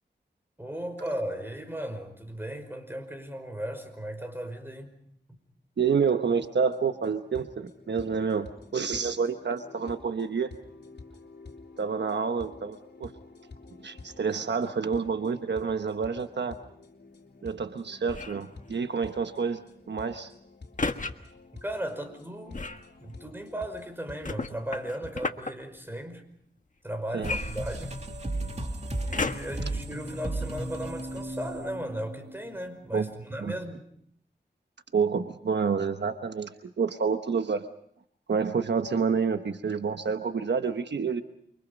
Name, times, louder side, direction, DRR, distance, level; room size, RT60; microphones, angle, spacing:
voice 1, 0.6-4.9 21.6-22.6 23.0-26.2 26.8-28.0 28.9-33.8, right 1 dB, 10° right, 7 dB, 5.3 m, -36 dB
voice 2, 5.8-10.5 11.8-13.1 13.8-16.6 17.4-19.6 19.9-20.3 27.1-27.3 32.9-33.1 33.4-33.5 34.9-37.6 38.3-41.2, right 5 dB, 75° right, 8 dB, 1.1 m, -28 dB
sound 1, 6.4-25.1, left 3 dB, 65° left, 3.4 m, -50 dB
sound 2, 18.1-18.5 20.8-21.1 22.5-22.9 24.2-25.5 27.2-28.2 29.1-29.6 30.3-30.4, left 3 dB, 45° left, 1.5 m, -32 dB
sound 3, 27.2-32.5, right 1 dB, 40° right, 2.8 m, -35 dB
29.5 x 24.5 x 5.3 m, 0.68 s
wide cardioid pair, 65°, 18 cm